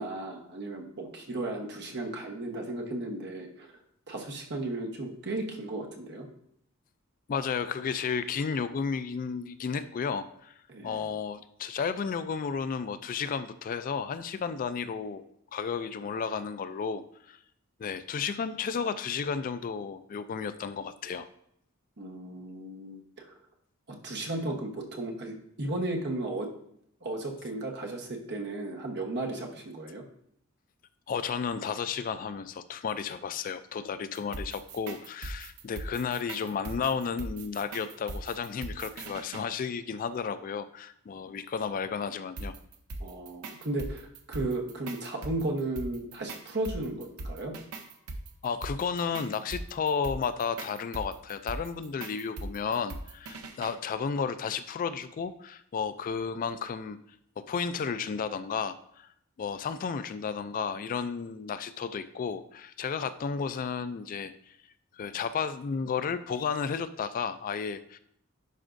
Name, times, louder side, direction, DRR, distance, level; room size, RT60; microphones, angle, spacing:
voice 1, 0.0-3.7 4.1-6.3 10.7-11.1 22.0-23.3 23.9-26.5 27.0-30.0 43.0-47.5, right 2 dB, 55° right, 1 dB, 1.1 m, -35 dB
voice 2, 7.3-10.5 10.8-15.2 15.5-17.4 17.8-21.3 31.1-42.5 48.4-57.0 57.4-59.1 59.4-64.6 64.9-68.0, left 6 dB, 40° left, 12 dB, 0.3 m, -33 dB
sound 1, 34.1-39.5 42.4-53.7, right 2 dB, 85° right, 0.7 m, -40 dB
10.5 x 5.1 x 2.6 m, 0.71 s
head